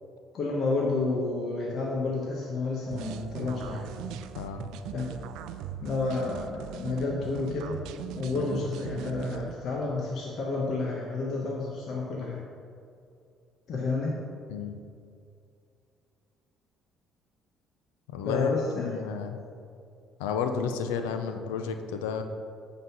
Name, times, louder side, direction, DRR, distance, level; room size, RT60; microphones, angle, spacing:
voice 1, 0.3-3.8 4.9-5.1 5.8-7.8 8.1-12.4 13.7-14.1 18.2-19.2, left 3 dB, 60° left, -2 dB, 1.1 m, -30 dB
sound 1, 2.9-9.6, right 9 dB, 75° right, 0.4 m, -39 dB
voice 2, 14.5-14.8 18.1-18.5 18.8-19.4 20.2-22.2, left 6 dB, 85° left, 7 dB, 0.5 m, -31 dB
9.3 x 3.9 x 5.8 m, 2.4 s
hypercardioid pair, 60°, 0 cm